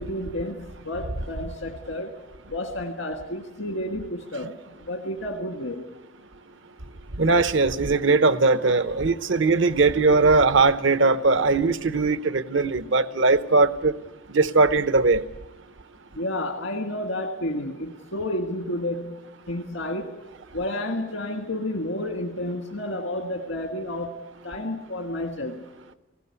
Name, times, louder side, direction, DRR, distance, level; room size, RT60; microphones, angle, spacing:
voice 1, 0.0-2.1 2.5-4.5 4.9-5.8 16.1-19.2 19.5-20.2 20.5-24.2 24.4-25.6, left 1 dB, 85° left, 2 dB, 1.7 m, -30 dB
voice 2, 7.2-13.9 14.3-15.2, right 3 dB, 75° right, 13 dB, 0.9 m, -20 dB
20.0 x 16.5 x 9.7 m, 1.1 s
head